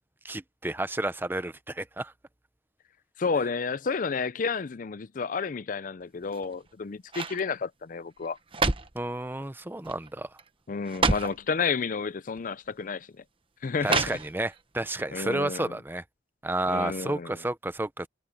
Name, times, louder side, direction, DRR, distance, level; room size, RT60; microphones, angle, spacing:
voice 1, 0.2-2.1 8.9-10.3 13.8-16.0 16.4-18.1, right 2 dB, 10° right, 0.6 m, -31 dB
voice 2, 3.2-8.4 10.7-13.1 13.6-14.2 15.1-15.8 16.6-17.4, left 5 dB, 45° left, 0.5 m, -31 dB
sound 1, 6.2-6.7 7.1-7.4 8.2-9.0 9.8-10.1 10.4-10.5 10.8-11.4 12.4-12.5 13.8-14.6 15.0-15.1, right 3 dB, 30° right, 1.0 m, -28 dB
head